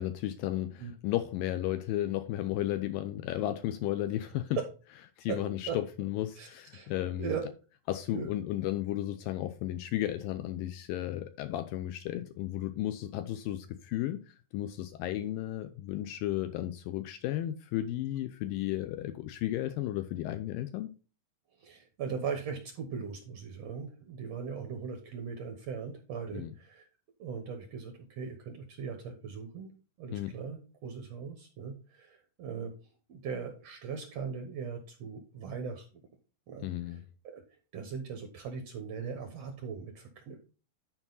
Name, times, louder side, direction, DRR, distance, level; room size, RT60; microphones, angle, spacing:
voice 1, 0.0-4.6 5.2-7.3 7.9-20.9 26.3-26.5 30.1-30.3 36.6-37.0, left 13 dB, 90° left, 2.0 m, -34 dB
voice 2, 6.4-6.9 7.2-7.4 8.1-8.3 21.6-26.9 27.2-29.7 30.0-32.7 33.1-35.9 36.5-36.7 37.2-37.4 37.7-40.4, right 6 dB, 80° right, 1.4 m, -39 dB
11.0 x 4.7 x 4.0 m
omnidirectional pair, 4.7 m